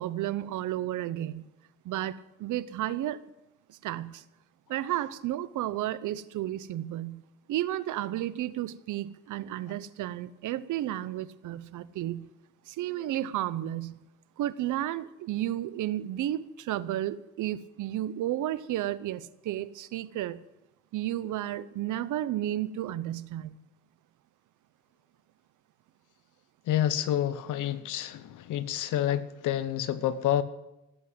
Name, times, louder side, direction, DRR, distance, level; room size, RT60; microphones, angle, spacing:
voice 1, 0.0-1.5 1.8-3.2 3.7-4.2 4.7-7.2 7.5-12.3 12.7-14.0 14.4-20.4 20.9-23.6, right 13 dB, 80° right, 17 dB, 0.8 m, -32 dB
voice 2, 26.7-30.4, left 11 dB, 85° left, 14 dB, 1.1 m, -28 dB
17.0 x 8.2 x 7.9 m, 0.94 s
cardioid pair, 90°, 30 cm